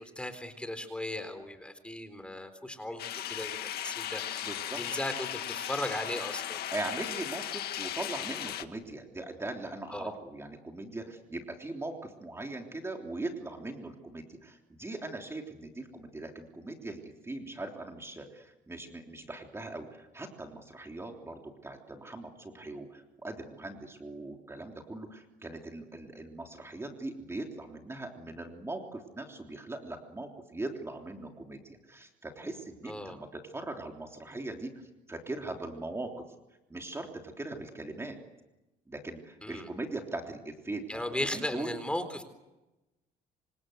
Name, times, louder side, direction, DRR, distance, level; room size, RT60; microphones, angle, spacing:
voice 1, 0.0-3.6 3.8-4.4 4.8-6.6 9.9-10.1 32.9-33.2 39.4-39.7 40.9-42.2, left 1 dB, 5° left, 9 dB, 4.0 m, -36 dB
sound 1, 3.0-8.7, left 11 dB, 70° left, 1.9 m, -37 dB
voice 2, 4.4-4.8 6.7-36.2 36.7-38.2 38.9-41.0 41.3-41.7, right 2 dB, 15° right, 2 dB, 3.4 m, -40 dB
27.5 x 26.5 x 8.0 m, 1.0 s
cardioid pair, 110°, 17 cm